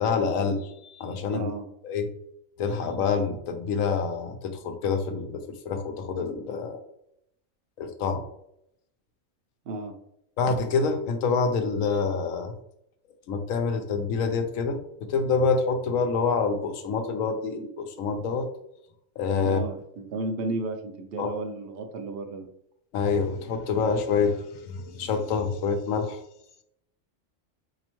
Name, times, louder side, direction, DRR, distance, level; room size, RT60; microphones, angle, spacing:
voice 1, 0.0-1.5 1.8-2.1 2.6-6.8 7.8-8.2 10.4-12.5 13.3-14.8 15.1-18.5 19.2-19.6 21.2-21.3 22.9-26.2, left 5 dB, 85° left, 7 dB, 1.0 m, -27 dB
voice 2, 1.3-1.7 9.7-9.9 19.4-22.5, right 2 dB, 65° right, 4 dB, 0.7 m, -33 dB
4.1 x 2.7 x 3.0 m, 0.76 s
omnidirectional pair, 1.4 m